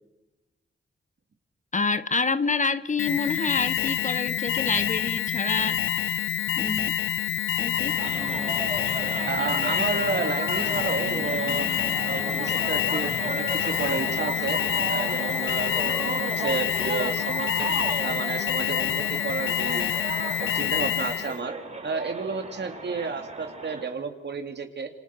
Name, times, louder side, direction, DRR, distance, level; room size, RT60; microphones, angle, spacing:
voice 1, 1.7-6.1 6.6-6.9 7.6-8.0, left 4 dB, 40° left, 14 dB, 1.2 m, -27 dB
Alarm, 3.0-21.4, left 10 dB, 85° left, 0.8 m, -27 dB
sound 1, 7.7-23.9, right 2 dB, 35° right, 6.1 m, -34 dB
voice 2, 9.3-11.7 12.0-14.6 14.9-17.7 18.0-19.9 20.4-21.5 21.8-24.9, right 4 dB, 60° right, 7 dB, 3.1 m, -31 dB
27.0 x 26.5 x 6.3 m, 1.0 s
cardioid pair, 55°, 20 cm